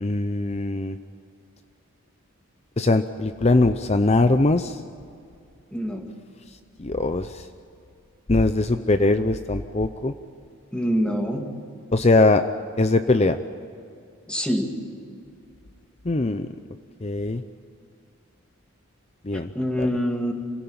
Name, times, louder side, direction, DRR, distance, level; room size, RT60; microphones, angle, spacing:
voice 1, 0.0-1.0 2.8-4.8 6.8-7.4 8.3-10.1 11.9-12.4 12.8-13.4 16.1-16.5 17.0-17.4 19.3-19.5 19.8-19.9, left 2 dB, 30° left, 10 dB, 0.6 m, -21 dB
voice 2, 5.7-6.0 10.7-11.5 14.3-14.7 19.3-20.3, equal, 5° left, 2 dB, 2.2 m, -25 dB
26.5 x 17.0 x 8.8 m, 2.4 s
head